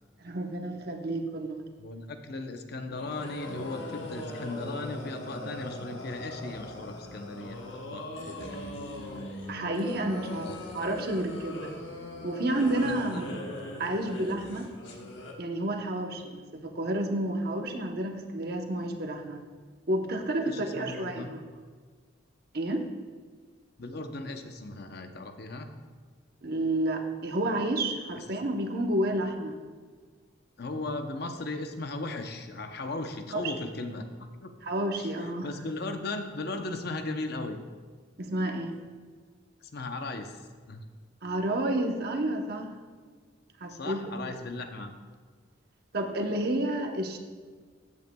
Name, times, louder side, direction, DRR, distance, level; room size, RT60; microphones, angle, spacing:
voice 1, 0.2-1.6 9.5-11.8 12.2-13.3 13.8-14.7 15.4-19.4 19.9-21.4 22.5-22.8 26.4-29.5 33.3-33.5 34.6-35.5 38.2-38.7 41.2-42.7 43.6-44.3 45.9-47.2, right 1 dB, 50° right, 3 dB, 0.9 m, -30 dB
voice 2, 1.8-8.1 10.4-10.6 13.1-13.2 20.4-21.3 23.8-25.7 30.6-34.0 34.4-34.5 35.0-37.6 39.7-40.4 40.7-40.8 43.7-44.9, left 2 dB, 55° left, 6 dB, 0.7 m, -37 dB
sound 1, 2.9-15.3, left 1 dB, 70° left, 1.2 m, -40 dB
14.0 x 8.2 x 2.3 m, 1.5 s
head